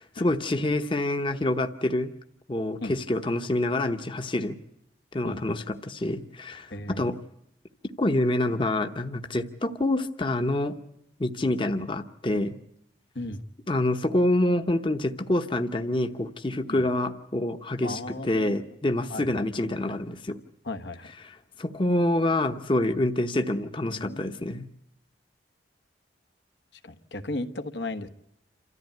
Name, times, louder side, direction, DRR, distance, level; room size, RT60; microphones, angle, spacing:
voice 1, 0.0-2.1 2.5-4.6 5.1-7.2 8.0-10.8 11.2-12.5 13.7-20.4 21.6-24.6, left 1 dB, 30° left, 0.9 m, -27 dB
voice 2, 5.2-5.6 6.7-7.2 13.1-13.4 16.7-16.9 17.8-18.6 19.1-19.5 20.6-21.1 23.9-24.4 26.8-28.1, left 2 dB, 75° left, 1.3 m, -36 dB
28.0 x 14.0 x 9.2 m
head